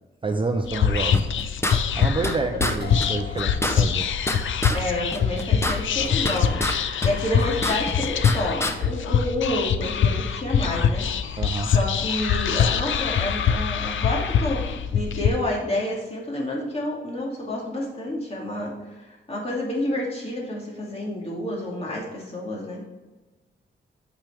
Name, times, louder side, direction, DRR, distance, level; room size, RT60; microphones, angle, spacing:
voice 1, 0.2-1.2 2.0-4.1 11.4-11.7, right 3 dB, 25° right, 5 dB, 0.5 m, -28 dB
Whispering, 0.6-15.3, left 7 dB, 70° left, 0.6 m, -24 dB
sound 1, 1.1-2.3 2.6-2.8 3.0-3.1 3.4-4.8 5.1-6.8 7.0-8.4 8.6-8.7, left 1 dB, 15° left, 0.7 m, -27 dB
sound 2, 2.8-15.1, left 5 dB, 55° left, 0.9 m, -46 dB
voice 2, 4.7-22.8, left 1 dB, 30° left, -3 dB, 2.3 m, -29 dB
8.7 x 6.1 x 3.4 m, 1.2 s
wide cardioid pair, 140°, 21 cm